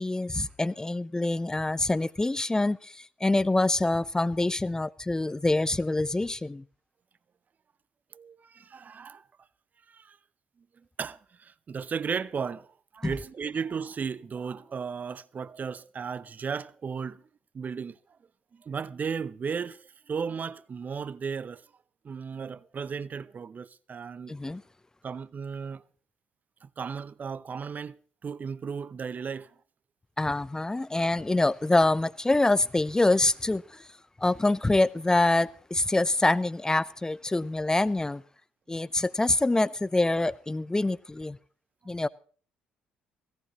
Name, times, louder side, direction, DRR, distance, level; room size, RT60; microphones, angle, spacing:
voice 1, 0.0-6.6 13.0-13.1 24.3-24.6 30.2-33.9 34.2-38.2 38.7-41.4 41.9-42.1, left 2 dB, 15° left, 0.6 m, -25 dB
voice 2, 8.1-9.2 9.9-10.2 11.0-12.7 12.9-17.2 17.5-18.0 18.5-21.6 22.0-24.3 25.0-25.8 26.6-29.5, right 6 dB, 40° right, 0.7 m, -35 dB
17.0 x 17.0 x 3.0 m
hypercardioid pair, 55°, 4 cm